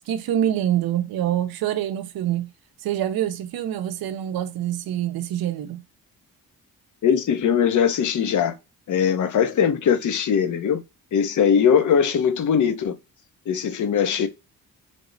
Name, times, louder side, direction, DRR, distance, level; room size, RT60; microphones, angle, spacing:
voice 1, 0.0-2.5 2.8-5.8, right 11 dB, 70° right, 0.6 m, -25 dB
voice 2, 7.0-8.5 8.9-10.8 11.1-13.0 13.5-14.3, left 7 dB, 50° left, 0.6 m, -20 dB
3.3 x 2.0 x 3.8 m
cardioid pair, 80°, 38 cm